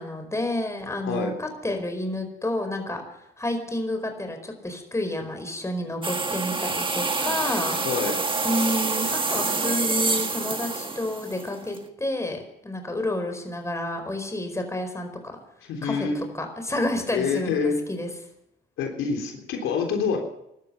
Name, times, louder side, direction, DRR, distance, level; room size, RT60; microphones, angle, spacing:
voice 1, 0.0-7.8 8.4-15.1 15.8-18.1, left 1 dB, 15° left, 5 dB, 4.5 m, -30 dB
sound 1, 6.0-11.8, right 3 dB, 25° right, 1.8 m, -27 dB
voice 2, 7.8-8.2 15.7-16.3 17.1-17.8 18.8-20.2, left 5 dB, 90° left, 2 dB, 3.5 m, -26 dB
15.5 x 12.5 x 6.8 m, 0.81 s
cardioid pair, 90°, 20 cm